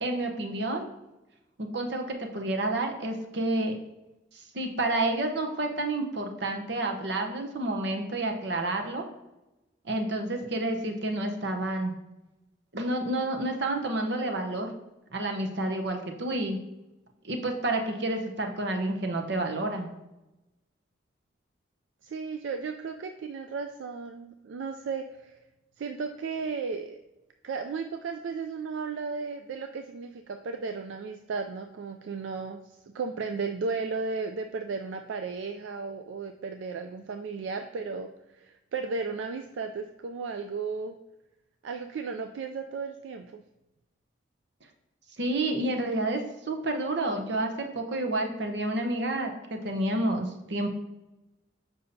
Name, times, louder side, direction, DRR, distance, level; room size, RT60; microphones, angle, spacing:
voice 1, 0.0-0.9 1.6-3.8 4.5-9.0 9.9-11.9 12.7-14.7 15.1-16.6 17.2-19.9 45.2-50.7, right 2 dB, 65° right, 4 dB, 0.8 m, -29 dB
voice 2, 22.0-25.4 25.8-27.0 27.4-41.0 41.6-43.4, right 4 dB, 80° right, 6 dB, 0.4 m, -35 dB
6.8 x 5.4 x 2.7 m, 0.99 s
head